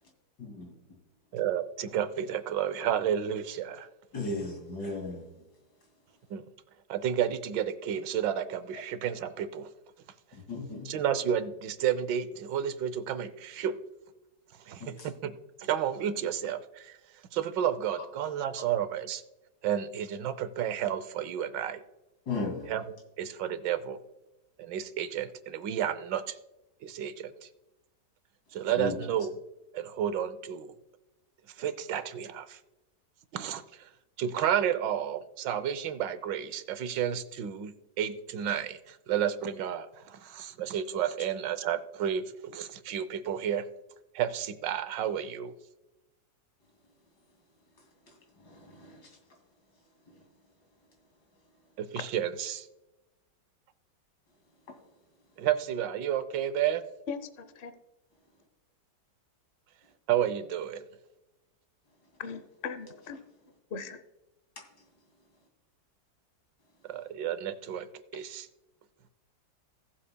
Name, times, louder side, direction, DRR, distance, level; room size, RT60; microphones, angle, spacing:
voice 1, 0.4-0.7 4.1-5.2 10.5-10.9 14.8-15.1 22.3-22.7 28.8-28.9 48.4-49.1, left 3 dB, 75° left, 1 dB, 3.0 m, -35 dB
voice 2, 1.3-3.9 6.3-6.4 6.9-9.7 10.8-13.8 14.7-15.3 15.6-16.9 17.3-19.2 19.6-21.8 22.7-24.0 24.6-26.4 26.8-27.5 28.5-29.3 29.7-30.7 31.6-32.6 33.3-33.6 34.2-43.7 44.1-45.5 51.8-52.7 55.4-56.8 60.1-60.8 66.9-67.9 68.1-68.5, right 9 dB, 90° right, 13 dB, 1.4 m, -31 dB
voice 3, 57.1-57.7 62.2-63.2 63.7-64.0, left 5 dB, 55° left, 11 dB, 0.6 m, -39 dB
17.5 x 7.5 x 2.2 m, 1.0 s
omnidirectional pair, 1.9 m